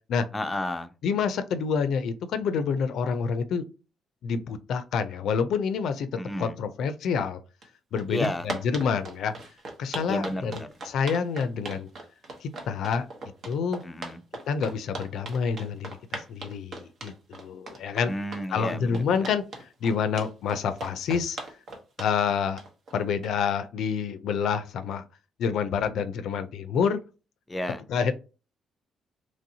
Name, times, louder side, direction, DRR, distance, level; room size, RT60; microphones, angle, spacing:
voice 1, 0.3-0.9 6.2-6.5 8.1-8.5 10.1-10.7 13.8-14.2 18.1-19.3 27.5-27.8, left 1 dB, 15° left, 0.4 m, -32 dB
voice 2, 1.0-3.6 4.2-6.1 6.4-7.4 7.9-9.3 9.8-11.9 12.4-13.1 13.5-13.8 14.5-18.1 18.5-19.4 19.8-21.4 22.0-22.6 22.9-25.0 25.4-27.0 27.9-28.2, left 6 dB, 75° left, 0.4 m, -28 dB
sound 1, 7.6-7.7 8.0-23.5, right 2 dB, 55° right, 0.9 m, -38 dB
3.0 x 2.6 x 2.7 m
cardioid pair, 90°, 0 cm